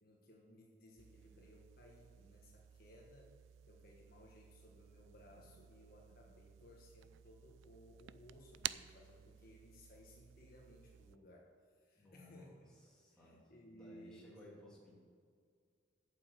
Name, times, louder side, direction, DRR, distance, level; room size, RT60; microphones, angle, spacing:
voice 1, 0.0-3.4 3.7-12.8 13.1-14.4, equal, 50° left, -1 dB, 1.4 m, -61 dB
sound 1, 1.0-11.2, right 13 dB, 75° right, 0.3 m, -52 dB
voice 2, 11.9-13.4 13.7-15.0, left 1 dB, 5° left, -6 dB, 2.6 m, -59 dB
8.5 x 7.1 x 7.6 m, 2.2 s
head